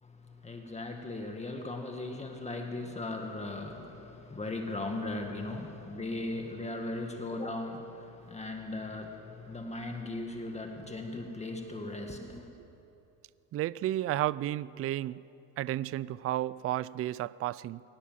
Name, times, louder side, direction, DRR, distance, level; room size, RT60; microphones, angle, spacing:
voice 1, 0.0-12.5, left 2 dB, 15° left, 2.0 m, -38 dB
voice 2, 13.5-15.2 15.6-17.8, right 14 dB, 35° right, 0.4 m, -32 dB
23.0 x 19.0 x 7.5 m
cardioid pair, 115°, 39 cm